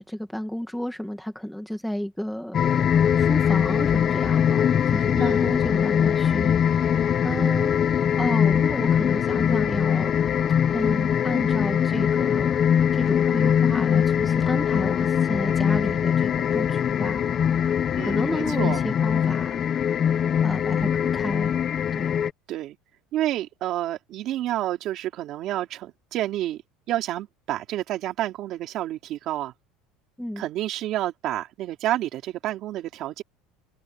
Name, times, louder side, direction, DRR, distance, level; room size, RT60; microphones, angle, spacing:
voice 1, 0.0-2.6 3.2-10.2 10.7-12.6 12.9-17.2 18.0-19.6 20.4-21.5 21.9-22.1 30.2-30.4, equal, ahead, 1.8 m, -32 dB
sound 1, 2.5-22.3, left 8 dB, 30° left, 0.5 m, -22 dB
voice 2, 17.9-18.8 22.5-22.8 23.1-26.6 26.9-29.5 30.4-33.2, right 13 dB, 45° right, 3.6 m, -29 dB
cardioid pair, 165°, 0 cm